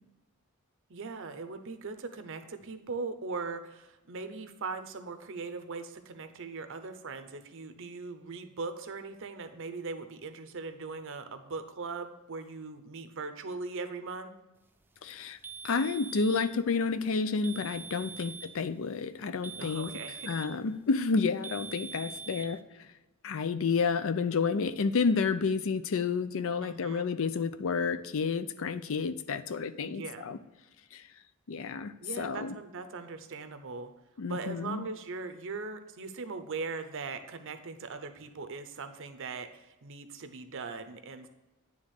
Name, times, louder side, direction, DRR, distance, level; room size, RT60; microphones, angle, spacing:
voice 1, 0.9-14.3 18.1-18.4 19.5-20.3 26.6-27.1 29.8-30.3 32.0-33.9 34.3-41.3, right 4 dB, 60° right, 9 dB, 0.7 m, -40 dB
voice 2, 15.0-15.4 15.6-19.9 20.2-22.9 23.2-30.4 30.9-31.0 31.5-32.5 34.2-34.9, left 5 dB, 65° left, 12 dB, 0.5 m, -30 dB
sound 1, 15.4-16.6 17.4-18.6 19.4-20.6 21.4-22.6, right 5 dB, 10° right, 0.4 m, -43 dB
9.5 x 3.5 x 6.4 m, 1.0 s
head